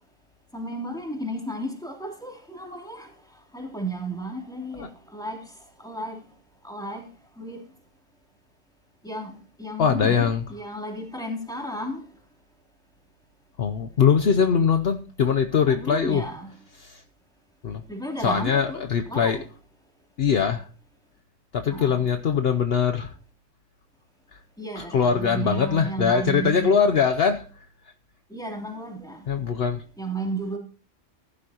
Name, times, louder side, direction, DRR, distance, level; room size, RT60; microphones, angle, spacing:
voice 1, 0.5-3.1 3.5-4.9 5.1-5.4 5.8-6.2 6.6-7.0 7.4-7.6 9.0-9.3 9.6-12.0 15.6-16.5 17.9-19.4 21.7-22.1 24.6-27.0 28.3-29.3 30.0-30.6, right 2 dB, 5° left, 0 dB, 3.0 m, -33 dB
voice 2, 9.8-10.4 13.6-16.2 16.8-17.0 17.6-17.8 18.2-19.4 20.2-20.7 21.5-23.1 24.8-27.5 29.3-29.8, left 6 dB, 60° left, 8 dB, 0.9 m, -22 dB
15.0 x 11.5 x 2.9 m, 0.37 s
omnidirectional pair, 1.3 m